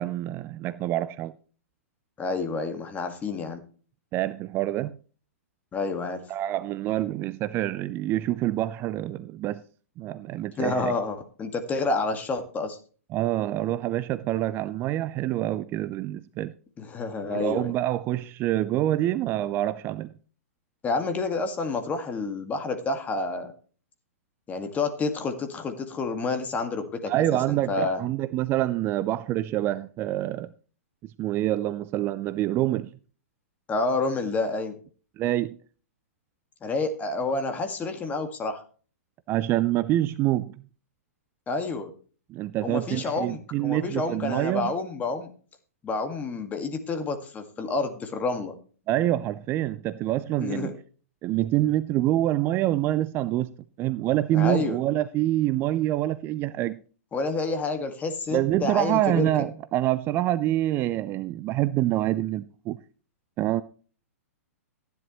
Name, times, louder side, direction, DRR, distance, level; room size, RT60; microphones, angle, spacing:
voice 1, 0.0-1.3 4.1-5.0 6.3-9.6 10.0-10.9 13.1-16.5 17.2-20.1 27.1-30.5 31.0-32.9 35.2-35.6 39.3-40.6 42.3-44.7 48.9-50.7 51.2-53.5 53.8-56.8 58.3-62.8 63.4-63.6, right 14 dB, 30° right, 0.4 m, -26 dB
voice 2, 2.2-3.6 5.7-6.2 10.6-12.8 16.8-17.7 20.8-23.5 24.5-27.1 27.5-28.0 33.7-34.8 36.6-38.6 41.5-41.9 42.6-45.3 45.8-48.5 50.4-50.7 54.3-54.8 57.1-59.3, left 3 dB, 20° left, 1.9 m, -29 dB
15.0 x 10.5 x 3.1 m
hypercardioid pair, 115°, 8 cm